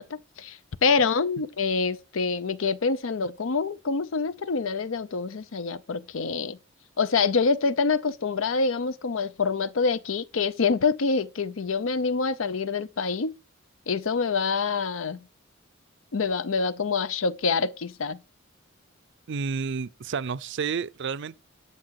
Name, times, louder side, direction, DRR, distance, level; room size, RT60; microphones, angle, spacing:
voice 1, 0.0-6.6 7.0-13.3 13.9-15.3 16.1-18.2, left 4 dB, 85° left, 0.6 m, -26 dB
voice 2, 19.3-21.4, right 5 dB, 65° right, 0.5 m, -30 dB
12.0 x 6.7 x 4.7 m
head